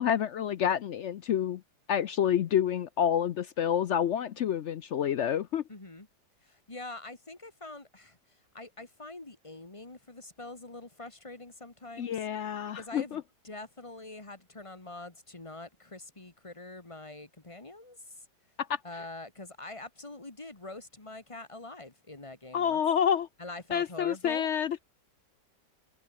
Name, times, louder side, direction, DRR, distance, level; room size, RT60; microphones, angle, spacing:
voice 1, 0.0-1.6 1.9-5.6 12.0-13.2 18.6-18.8 22.5-23.3 23.7-24.8, left 9 dB, 65° left, 0.7 m, -28 dB
voice 2, 5.7-6.1 6.4-12.3 12.7-18.3 18.8-22.8 23.4-24.5, left 2 dB, 20° left, 2.2 m, -45 dB
omnidirectional pair, 1.8 m